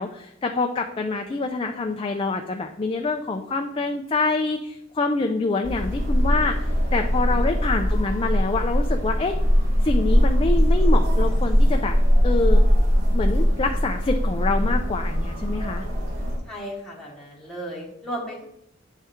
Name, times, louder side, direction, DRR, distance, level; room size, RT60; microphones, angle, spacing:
voice 1, 0.0-6.6 6.9-9.4 9.8-11.9 12.2-12.6 13.1-15.8, left 3 dB, 25° left, 4 dB, 0.4 m, -26 dB
sound 1, 5.6-16.4, equal, 80° right, 1.9 m, -21 dB
voice 2, 7.1-7.5 16.4-18.4, equal, ahead, -4 dB, 1.1 m, -35 dB
8.9 x 3.5 x 4.4 m, 0.81 s
head